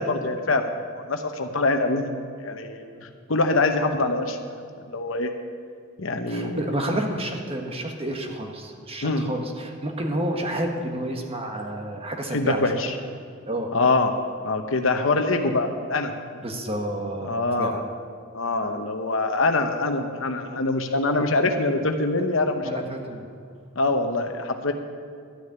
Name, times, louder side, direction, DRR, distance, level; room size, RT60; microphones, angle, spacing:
voice 1, 0.0-2.1 2.4-2.9 3.3-5.3 6.0-6.6 9.0-9.3 12.3-12.9 13.7-14.1 14.4-16.1 17.2-17.8 18.3-22.8 23.8-24.7, left 2 dB, 70° left, 6 dB, 1.0 m, -24 dB
voice 2, 6.3-13.1 13.5-13.7 16.4-17.8 18.6-18.7 22.6-23.3, right 1 dB, 30° right, 3 dB, 1.4 m, -30 dB
12.5 x 6.5 x 8.9 m, 2.3 s
head